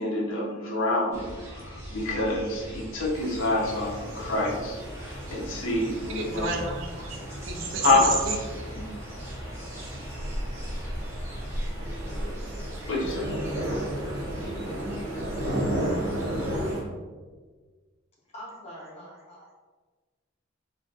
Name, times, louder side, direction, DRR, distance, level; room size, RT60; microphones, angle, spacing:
voice 1, 0.0-6.5 7.8-8.1 8.7-8.9 12.9-13.3, left 2 dB, 70° left, -3 dB, 0.6 m, -27 dB
sound 1, 1.1-16.8, equal, 15° right, 0.5 m, -38 dB
sound 2, 3.1-16.8, right 1 dB, 85° right, 1.0 m, -35 dB
voice 2, 6.1-7.2 7.5-8.6, right 4 dB, 65° right, 1 dB, 0.4 m, -31 dB
voice 3, 18.3-19.5, equal, 30° left, -5 dB, 0.7 m, -44 dB
2.3 x 2.2 x 2.5 m, 1.4 s
head